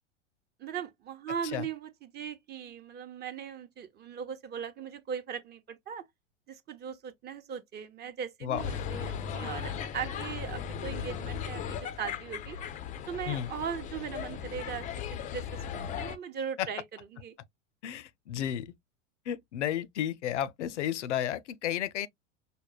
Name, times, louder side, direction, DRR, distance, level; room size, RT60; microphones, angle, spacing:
voice 1, 0.6-6.0 6.5-12.6 13.1-16.8 17.1-17.3, right 7 dB, 30° right, 0.7 m, -39 dB
sound 1, 8.6-16.2, left 7 dB, 20° left, 0.4 m, -37 dB
voice 2, 17.8-18.7 19.3-22.1, left 11 dB, 75° left, 0.5 m, -32 dB
5.2 x 2.1 x 2.3 m
figure-of-eight pair, 85°, 36 cm